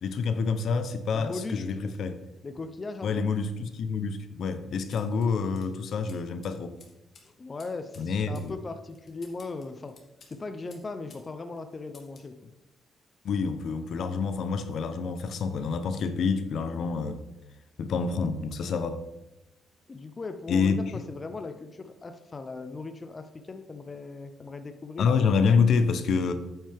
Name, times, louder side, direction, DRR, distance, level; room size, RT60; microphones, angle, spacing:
voice 1, 0.0-2.2 3.0-6.8 8.0-8.5 13.2-17.2 17.8-19.0 20.5-21.0 25.0-26.3, left 5 dB, 65° left, 10 dB, 0.8 m, -27 dB
voice 2, 1.1-1.6 2.4-3.2 7.4-10.0 10.3-12.5 18.1-18.2 19.9-25.1, left 3 dB, 25° left, 8 dB, 0.6 m, -38 dB
sound 1, 4.9-11.3 11.6-12.3, left 4 dB, 45° left, 2.0 m, -57 dB
8.9 x 8.7 x 3.5 m, 0.94 s
cardioid pair, 135°, 0 cm